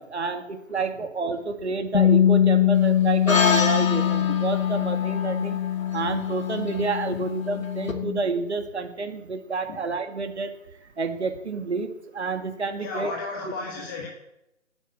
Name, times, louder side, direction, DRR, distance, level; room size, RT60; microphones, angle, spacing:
voice 1, 0.0-5.6 5.9-10.5 10.8-13.1, right 4 dB, 55° right, 6 dB, 2.5 m, -29 dB
Bass guitar, 1.9-8.2, left 10 dB, 70° left, 1.7 m, -23 dB
sound 1, 3.3-7.9, left 5 dB, 85° left, 2.6 m, -29 dB
voice 2, 12.8-14.1, left 3 dB, 15° left, 0 dB, 1.3 m, -34 dB
12.5 x 9.5 x 8.6 m, 0.89 s
figure-of-eight pair, 155°, 39 cm